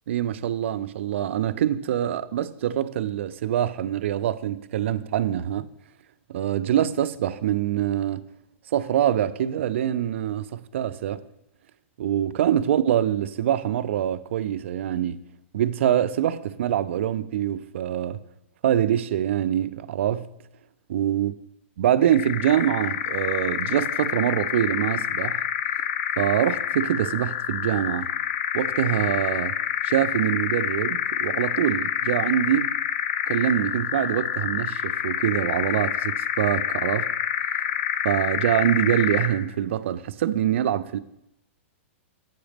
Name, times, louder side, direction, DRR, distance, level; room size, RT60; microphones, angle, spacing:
voice 1, 0.1-5.7 6.3-8.2 8.7-11.2 12.0-15.2 15.5-18.2 18.6-20.3 20.9-21.3 21.8-25.4 26.2-28.1 28.5-32.7 33.3-37.1 38.0-41.0, right 11 dB, 65° right, 0.4 m, -24 dB
sound 1, 22.0-39.4, left 9 dB, 50° left, 0.4 m, -27 dB
7.9 x 4.9 x 5.1 m
supercardioid pair, 165°, 7 cm